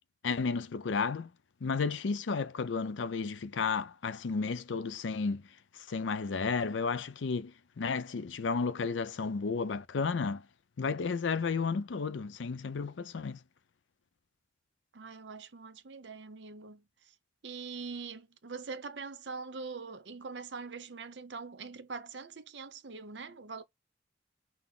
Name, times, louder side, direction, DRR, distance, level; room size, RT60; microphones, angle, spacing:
voice 1, 0.2-1.3 1.6-10.5 10.8-13.4, left 5 dB, 85° left, 0.5 m, -33 dB
voice 2, 14.9-16.8 17.4-23.6, right 4 dB, 70° right, 0.8 m, -43 dB
6.0 x 2.1 x 3.7 m
head